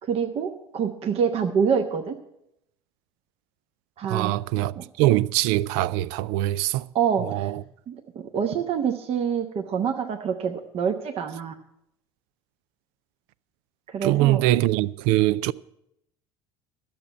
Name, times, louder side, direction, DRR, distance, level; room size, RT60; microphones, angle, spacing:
voice 1, 0.0-2.2 4.0-4.3 4.8-4.9 6.9-7.5 7.9-11.5 13.9-14.4, right 7 dB, 45° right, 1.1 m, -26 dB
voice 2, 4.0-6.9 7.2-7.6 14.0-15.5, right 16 dB, 60° right, 0.4 m, -23 dB
12.0 x 7.1 x 8.8 m
hypercardioid pair, 65°, 14 cm